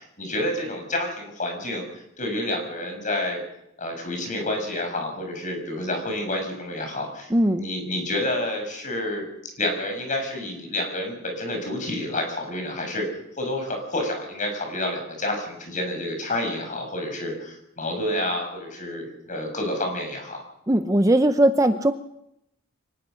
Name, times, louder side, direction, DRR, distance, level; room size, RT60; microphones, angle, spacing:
voice 1, 0.0-3.4 3.8-9.2 9.6-13.1 13.4-20.4, left 1 dB, 40° left, 4 dB, 6.1 m, -29 dB
voice 2, 7.3-7.7 20.7-21.9, right 1 dB, 15° right, 9 dB, 0.7 m, -19 dB
23.5 x 19.5 x 6.3 m, 0.82 s
head